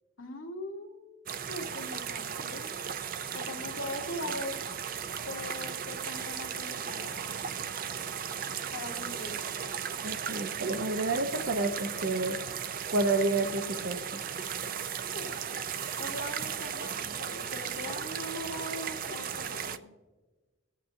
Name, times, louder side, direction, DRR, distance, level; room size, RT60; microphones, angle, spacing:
voice 1, 0.2-1.2 1.5-2.7 3.3-4.6 5.3-7.3 8.7-9.6 15.1-15.4 16.0-19.9, left 1 dB, 90° left, 1 dB, 1.4 m, -41 dB
sound 1, 1.3-19.8, right 7 dB, 45° right, 0.4 m, -36 dB
voice 2, 10.0-12.4 12.9-14.2, right 2 dB, 70° right, 5 dB, 0.9 m, -30 dB
22.0 x 8.4 x 2.7 m, 1.3 s
head